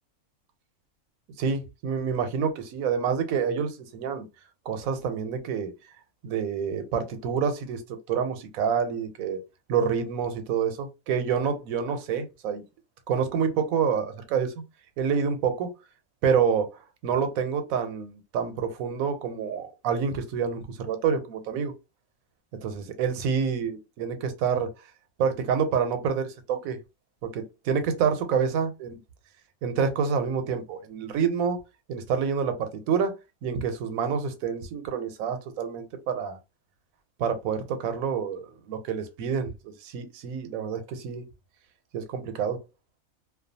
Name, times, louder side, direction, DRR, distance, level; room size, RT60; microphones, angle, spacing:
voice 1, 1.4-4.3 4.7-5.7 6.2-7.8 8.1-9.4 9.7-12.6 13.1-14.5 15.0-15.7 16.2-16.7 17.0-21.7 22.6-24.7 25.2-26.8 27.2-28.9 29.6-31.6 31.9-33.1 33.4-36.4 37.2-41.2 41.9-42.6, right 6 dB, 85° right, 1.0 m, -27 dB
2.4 x 2.2 x 2.6 m
omnidirectional pair, 1.4 m